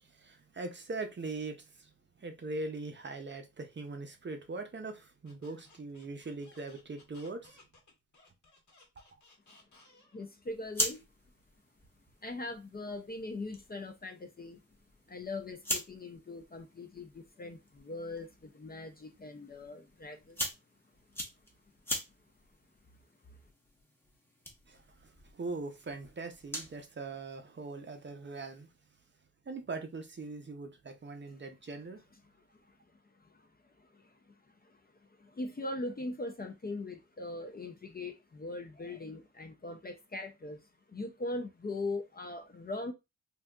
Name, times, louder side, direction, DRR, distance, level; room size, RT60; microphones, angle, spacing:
voice 1, 0.0-1.9 2.2-7.6 24.7-28.7 29.5-32.0, right 3 dB, 35° right, 0.5 m, -41 dB
Squeak, 5.2-10.3, left 2 dB, 65° left, 1.2 m, -61 dB
voice 2, 10.1-11.0 12.2-14.6 15.1-20.4 33.2-34.3 34.6-34.8 35.2-42.9, left 2 dB, 30° left, 0.4 m, -41 dB
sound 1, 10.4-26.8, left 1 dB, 5° left, 0.7 m, -43 dB
3.7 x 2.7 x 2.2 m
wide cardioid pair, 160°, 32 cm